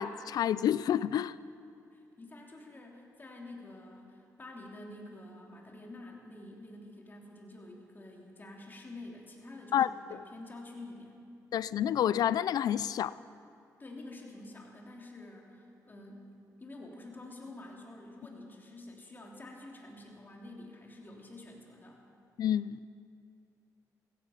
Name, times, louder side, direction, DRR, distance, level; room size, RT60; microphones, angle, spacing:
voice 1, 0.0-1.4 9.7-9.9 11.5-13.1 22.4-22.9, left 10 dB, 70° left, 0.4 m, -29 dB
voice 2, 1.9-11.2 13.8-16.3 16.6-22.0, left 2 dB, 30° left, 3.1 m, -48 dB
16.0 x 15.0 x 5.8 m
cardioid pair, 75°, 7 cm